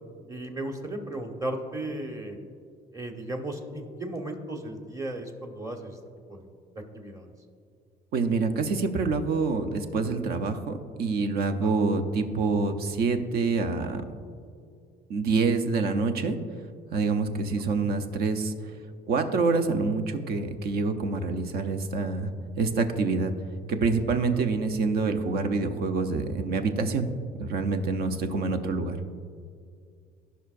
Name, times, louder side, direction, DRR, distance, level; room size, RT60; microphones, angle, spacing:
voice 1, 0.3-2.4 2.9-6.0 6.3-6.5 6.7-7.3 11.6-11.7 24.3-24.4 28.2-28.6, right 1 dB, 20° right, 4 dB, 1.1 m, -36 dB
voice 2, 8.1-14.0 15.1-16.4 16.9-18.5 19.1-22.3 22.6-23.3 23.7-27.1 27.4-29.0, right 4 dB, 65° right, 8 dB, 0.8 m, -26 dB
15.5 x 5.7 x 2.5 m, 2.2 s
cardioid pair, 110°, 17 cm